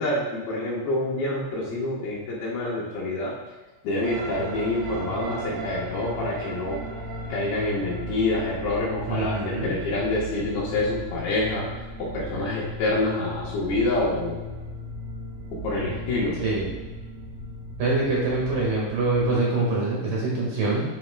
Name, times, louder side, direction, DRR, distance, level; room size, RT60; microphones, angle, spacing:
voice 1, 0.0-3.3 3.8-6.8 7.3-11.7 12.0-14.4 15.6-16.4, left 2 dB, 70° left, -4 dB, 2.9 m, -27 dB
sound 1, 4.0-19.3, right 1 dB, 80° right, 3.1 m, -36 dB
voice 2, 9.1-9.7 16.4-16.7 17.8-20.8, right 2 dB, 55° right, -5 dB, 2.8 m, -24 dB
9.3 x 8.6 x 2.2 m, 1.2 s
omnidirectional pair, 5.1 m